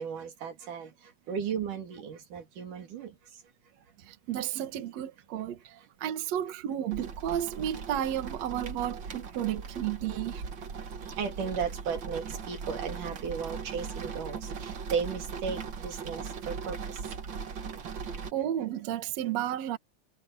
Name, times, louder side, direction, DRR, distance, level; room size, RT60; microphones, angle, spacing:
voice 1, 0.0-3.2 11.0-17.0, right 6 dB, 85° right, 4.1 m, -35 dB
voice 2, 4.0-10.4 18.3-19.8, right 11 dB, 65° right, 2.4 m, -32 dB
sound 1, 6.9-18.3, right 6 dB, 45° right, 1.9 m, -39 dB
omnidirectional pair, 3.5 m